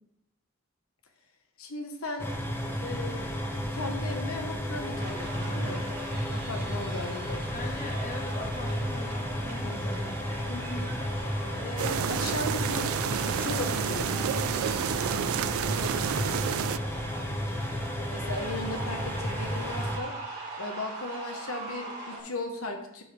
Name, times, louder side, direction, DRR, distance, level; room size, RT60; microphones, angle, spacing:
voice 1, 1.6-2.3 2.8-3.3 3.7-5.8 6.3-7.4 10.5-10.9 11.6-12.9 13.2-14.5 15.7-16.4 18.1-20.1 20.6-23.0, left 2 dB, 85° left, 4 dB, 1.2 m, -37 dB
sound 1, 2.2-20.0, equal, 10° left, 0.7 m, -33 dB
sound 2, 4.9-22.2, right 2 dB, 40° right, 3.6 m, -42 dB
voice 2, 7.5-10.2, left 1 dB, 35° left, 0 dB, 1.4 m, -41 dB
sound 3, 11.8-16.8, right 9 dB, 75° right, 0.3 m, -30 dB
11.5 x 5.6 x 3.4 m, 0.80 s
head